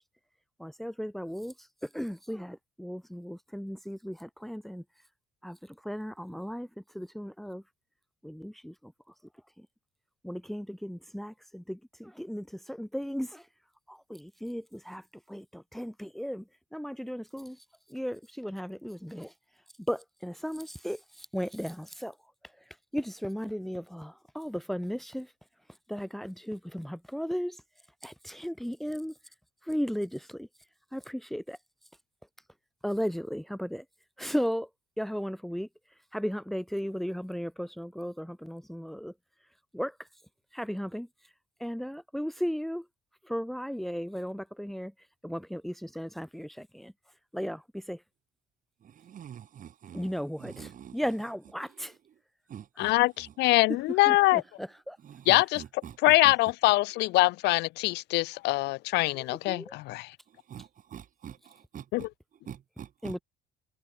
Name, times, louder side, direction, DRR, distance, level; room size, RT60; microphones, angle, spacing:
voice 1, 0.6-1.5 1.8-4.8 5.4-5.6 5.8-6.7 6.9-7.6 8.2-8.9 10.2-13.4 13.9-15.0 15.3-16.4 16.7-17.6 17.9-19.3 19.9-22.1 22.9-25.3 25.9-27.6 28.0-29.1 29.7-30.5 30.9-31.6 32.8-33.8 34.2-34.7 35.0-35.7 36.1-39.1 39.7-39.9 40.5-41.1 41.6-42.8 43.3-44.9 45.2-46.9 47.3-48.0 49.9-51.9 52.8-52.9 54.1-55.0 59.1-59.8 63.0-63.2, equal, ahead, 2.2 m, -35 dB
voice 2, 49.0-50.1 50.4-50.9 52.5-52.9 55.0-55.9 60.9-61.3 61.7-61.8 62.5-63.1, right 9 dB, 50° right, 7.2 m, -44 dB
voice 3, 52.8-54.4 55.3-55.6 56.0-60.1 61.9-62.1, left 20 dB, 90° left, 1.1 m, -24 dB
cardioid pair, 110°, 17 cm